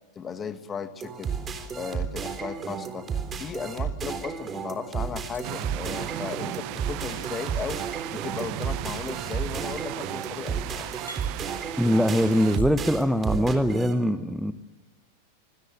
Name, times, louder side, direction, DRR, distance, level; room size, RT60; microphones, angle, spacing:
voice 1, 0.2-1.3 1.7-3.1 3.4-7.8 8.1-10.9, left 6 dB, 20° left, 11 dB, 1.7 m, -36 dB
sound 1, 1.0-13.9, right 6 dB, 25° right, 3.7 m, -33 dB
sound 2, 5.3-6.6 7.6-12.7, right 1 dB, 85° left, 4.9 m, -51 dB
sound 3, 5.4-12.6, right 17 dB, 45° right, 0.9 m, -36 dB
voice 2, 11.8-14.5, equal, ahead, 11 dB, 0.9 m, -22 dB
26.5 x 19.5 x 7.7 m, 1.2 s
figure-of-eight pair, 90°, 0 cm